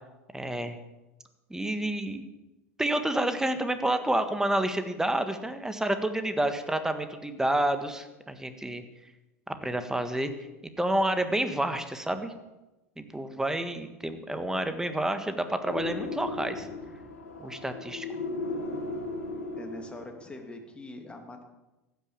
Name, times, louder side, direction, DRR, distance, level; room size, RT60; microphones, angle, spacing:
voice 1, 0.3-0.8 1.5-2.3 2.8-8.8 9.5-10.3 10.6-12.3 13.0-16.7 17.4-18.0, right 1 dB, 5° right, 9 dB, 1.6 m, -29 dB
sound 1, 15.7-20.3, left 3 dB, 80° left, 2.2 m, -36 dB
voice 2, 19.5-21.4, left 2 dB, 10° left, 3 dB, 2.7 m, -43 dB
14.5 x 9.4 x 7.2 m, 1.0 s
hypercardioid pair, 80°, 8 cm